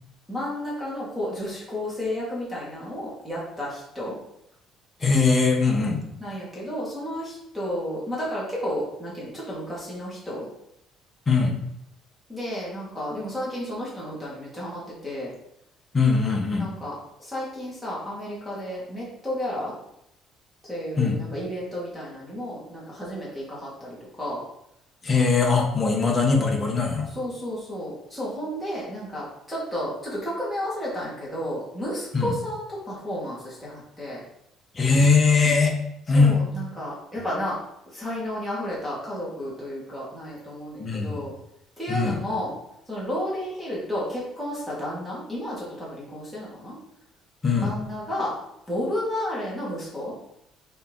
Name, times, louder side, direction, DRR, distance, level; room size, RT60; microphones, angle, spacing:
voice 1, 0.3-4.1 6.2-10.4 12.3-15.3 16.6-16.9 17.2-19.7 20.7-24.4 27.1-34.2 36.1-37.6 37.9-41.3 41.8-42.5 42.9-46.8 47.6-48.3 48.7-50.1, equal, ahead, -8 dB, 2.5 m, -32 dB
voice 2, 5.0-6.0 11.3-11.5 15.9-16.7 21.0-21.2 25.0-27.1 32.1-32.3 34.7-35.7 36.1-36.4 40.8-41.2 41.9-42.2 47.4-47.7, left 4 dB, 20° left, 1 dB, 1.4 m, -21 dB
6.6 x 4.6 x 4.0 m, 0.78 s
cardioid pair, 145°, 0 cm